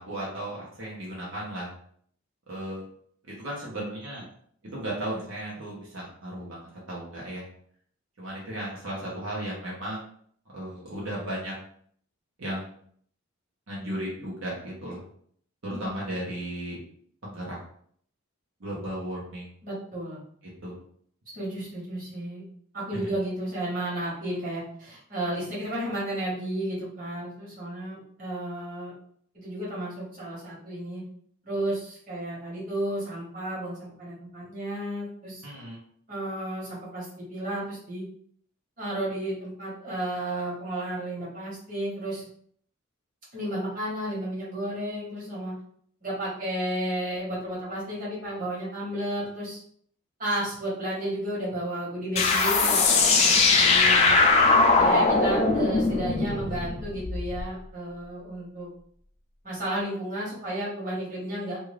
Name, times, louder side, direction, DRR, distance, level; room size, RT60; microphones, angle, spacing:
voice 1, 0.0-1.7 2.5-2.8 3.2-4.2 4.6-7.4 8.2-10.0 10.5-11.5 12.4-12.7 13.7-15.0 15.6-16.8 17.2-17.6 18.6-19.5 20.6-20.7 22.9-23.1 35.4-35.8, right 1 dB, 80° right, -5 dB, 1.0 m, -35 dB
voice 2, 19.6-20.2 21.3-22.4 22.7-28.9 29.3-31.0 31.4-35.4 36.1-38.0 38.8-42.2 43.3-45.5 46.0-49.6 50.2-54.2 54.7-58.7 59.4-61.6, right 1 dB, 45° right, -7 dB, 1.3 m, -33 dB
sound 1, 52.2-57.4, left 3 dB, 35° left, 0.4 m, -21 dB
2.6 x 2.4 x 3.1 m, 0.62 s
head